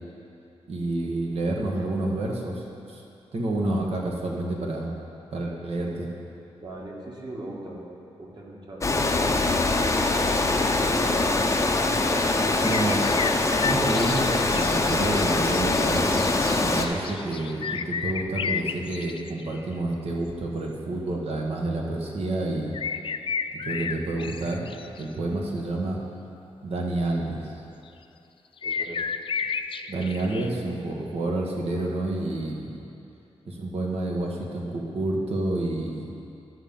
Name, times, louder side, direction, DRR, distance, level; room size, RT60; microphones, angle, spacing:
voice 1, 0.6-3.0 3.3-4.9 5.3-6.1 12.6-13.0 13.6-16.3 16.6-22.7 23.6-24.7 24.9-26.0 26.6-27.5 29.9-32.8 33.5-36.1, right 2 dB, 65° right, -1 dB, 1.4 m, -29 dB
voice 2, 6.6-7.8 8.1-9.7 12.0-12.4 25.2-25.5 28.6-29.2 29.9-30.1, right 2 dB, 40° right, -3 dB, 1.8 m, -41 dB
Water, 8.8-16.9, left 2 dB, 25° left, 0.7 m, -23 dB
sound 1, 12.6-19.6 22.7-25.0 28.6-30.5, left 6 dB, 50° left, 0.3 m, -32 dB
11.0 x 3.9 x 7.1 m, 2.8 s
cardioid pair, 65°, 11 cm